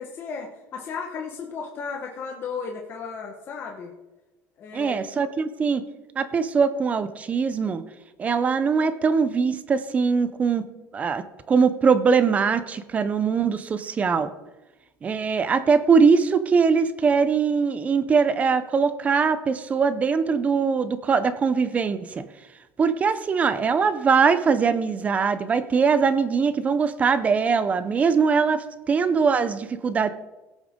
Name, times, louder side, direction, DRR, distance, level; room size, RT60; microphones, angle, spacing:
voice 1, 0.0-3.9 4.6-5.0, left 5 dB, 40° left, 1 dB, 1.3 m, -34 dB
voice 2, 4.7-5.8 6.2-7.8 8.2-10.6 10.9-14.3 15.0-22.2 22.8-30.1, right 5 dB, 25° right, 13 dB, 0.6 m, -22 dB
17.5 x 7.2 x 3.7 m, 1.1 s
cardioid pair, 155°, 6 cm